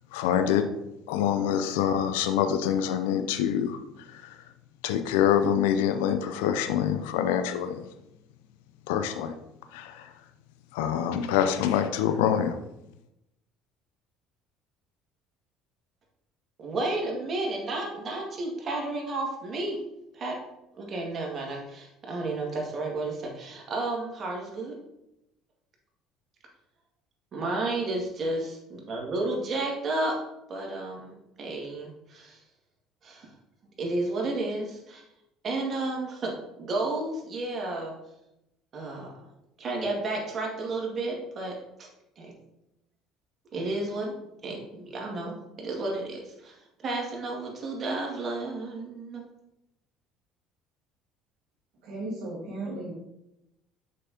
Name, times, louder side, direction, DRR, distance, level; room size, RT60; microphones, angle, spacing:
voice 1, 0.1-0.6 1.1-3.8 4.1-4.4 4.8-7.8 8.9-9.3 9.7-10.1 10.7-12.6, left 9 dB, 80° left, 8 dB, 0.4 m, -25 dB
voice 2, 16.6-19.8 20.1-20.4 20.7-24.7 27.3-30.1 30.5-31.1 31.4-32.4 33.0-33.3 33.8-35.0 35.4-37.9 38.7-39.1 39.6-41.6 42.2-42.3 43.5-44.1 44.4-46.5 46.8-49.2, right 2 dB, 45° right, -1 dB, 1.9 m, -32 dB
voice 3, 51.8-52.9, right 2 dB, 65° right, -6 dB, 1.6 m, -35 dB
6.5 x 5.4 x 2.8 m, 0.87 s
hypercardioid pair, 65°, 0 cm